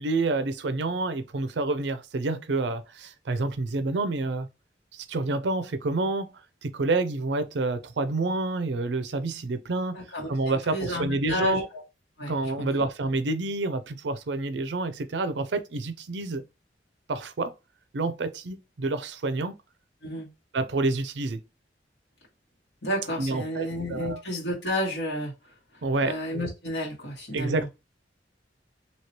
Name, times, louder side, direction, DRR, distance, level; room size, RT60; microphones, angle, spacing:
voice 1, 0.0-4.5 4.9-6.3 6.6-10.0 10.3-11.7 12.3-16.4 17.1-17.5 17.9-19.5 20.5-21.4 23.2-24.2 25.8-26.2 27.3-27.7, right 2 dB, 80° right, 0.5 m, -28 dB
voice 2, 9.9-11.6 12.2-12.3 12.6-12.7 20.0-20.3 22.8-25.3 26.0-27.7, left 1 dB, 70° left, 1.6 m, -31 dB
3.1 x 2.8 x 2.8 m
head